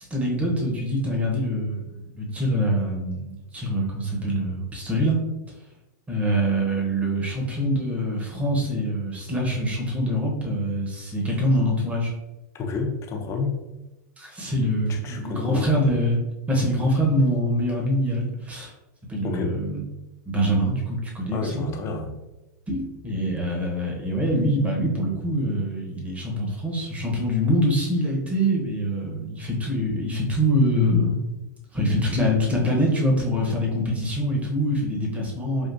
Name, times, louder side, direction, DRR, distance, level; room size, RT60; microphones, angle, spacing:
voice 1, 0.1-5.2 6.1-12.1 14.2-16.2 16.5-18.7 19.1-19.8 20.2-21.6 22.7-31.2 31.7-35.7, equal, 15° right, -2 dB, 0.9 m, -24 dB
voice 2, 12.5-13.7 14.9-15.7 19.2-19.6 21.3-22.2, left 4 dB, 30° left, 3 dB, 0.6 m, -29 dB
3.6 x 2.4 x 2.6 m, 1.0 s
hypercardioid pair, 120°, 10 cm